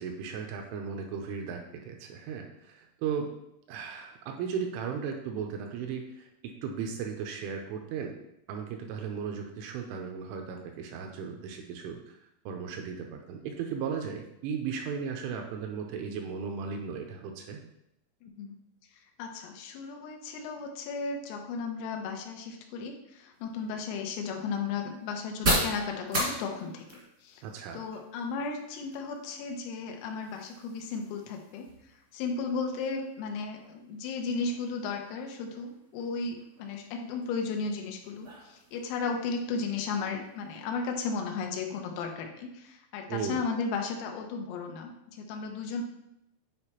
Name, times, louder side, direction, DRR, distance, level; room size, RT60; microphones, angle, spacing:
voice 1, 0.0-3.3 3.7-6.3 6.6-8.1 8.5-12.2 12.5-17.6 27.4-27.8 43.1-43.4, right 6 dB, 80° right, 3 dB, 2.9 m, -36 dB
voice 2, 18.2-18.6 19.2-27.4 27.7-31.7 32.1-45.8, left 4 dB, 90° left, 2 dB, 3.5 m, -35 dB
sound 1, 23.3-40.9, right 1 dB, 55° right, 1.1 m, -39 dB
9.7 x 4.2 x 2.9 m, 0.82 s
omnidirectional pair, 5.9 m